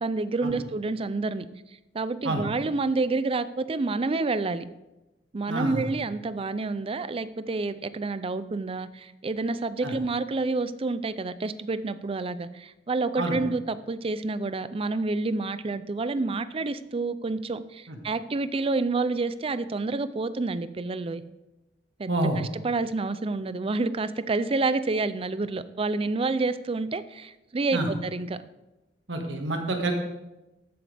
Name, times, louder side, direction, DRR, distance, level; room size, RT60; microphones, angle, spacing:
voice 1, 0.0-1.5 1.9-4.7 5.3-21.2 22.0-28.4, right 3 dB, 30° right, 14 dB, 0.4 m, -29 dB
voice 2, 5.5-5.9 9.8-9.9 13.2-13.4 17.9-18.0 22.1-22.4 27.7-27.9 29.1-29.9, right 2 dB, 80° right, 3 dB, 1.7 m, -28 dB
13.5 x 8.0 x 3.4 m, 0.99 s
head